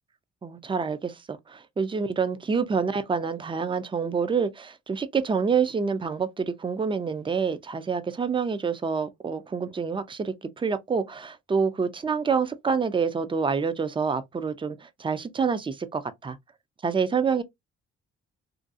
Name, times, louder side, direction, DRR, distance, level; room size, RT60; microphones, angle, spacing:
voice 1, 0.4-16.4 16.8-17.4, right 5 dB, 20° right, 0.3 m, -27 dB
2.5 x 2.3 x 2.5 m
cardioid pair, 80°, 29 cm